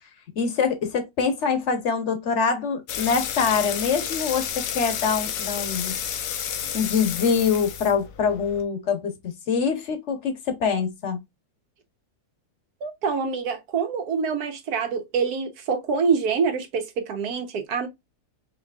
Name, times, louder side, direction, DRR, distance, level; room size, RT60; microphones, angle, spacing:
voice 1, 0.4-4.5 4.7-6.0 6.7-11.2, left 6 dB, 50° left, 1.2 m, -24 dB
sound 1, 2.9-8.6, left 9 dB, 85° left, 1.3 m, -31 dB
voice 2, 12.8-17.9, right 5 dB, 80° right, 1.4 m, -26 dB
4.8 x 3.0 x 2.3 m
omnidirectional pair, 1.6 m